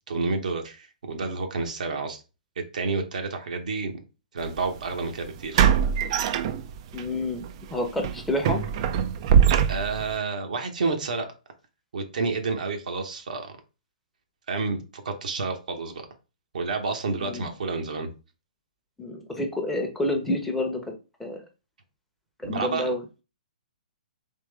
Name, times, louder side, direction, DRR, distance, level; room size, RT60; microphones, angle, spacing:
voice 1, 0.1-2.2 2.7-4.0 4.3-5.7 9.7-11.3 11.9-13.5 14.5-16.0 16.5-18.1 22.4-22.9, right 4 dB, 65° right, 4 dB, 0.9 m, -29 dB
sound 1, 4.4-4.6 5.5-7.0 7.4-7.6 8.0-10.1, right 8 dB, 40° right, 0.4 m, -22 dB
voice 2, 6.9-8.7 17.2-17.5 19.0-20.9 21.2-21.4 22.4-23.0, left 1 dB, 5° left, 1 dB, 0.8 m, -29 dB
3.6 x 3.0 x 3.3 m, 0.30 s
figure-of-eight pair, 125°, 5 cm